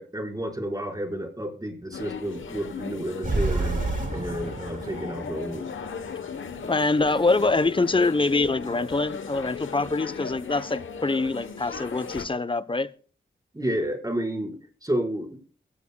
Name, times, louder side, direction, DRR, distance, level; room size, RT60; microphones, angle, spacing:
voice 1, 0.0-3.8 4.1-5.7 13.5-15.4, right 1 dB, 20° right, 4.6 m, -31 dB
sound 1, 1.9-12.3, left 6 dB, 80° left, 1.0 m, -37 dB
sound 2, 3.2-6.6, right 3 dB, 45° right, 3.7 m, -30 dB
voice 2, 6.7-12.9, left 3 dB, 25° left, 0.8 m, -24 dB
22.5 x 16.0 x 2.2 m
cardioid pair, 60°, 20 cm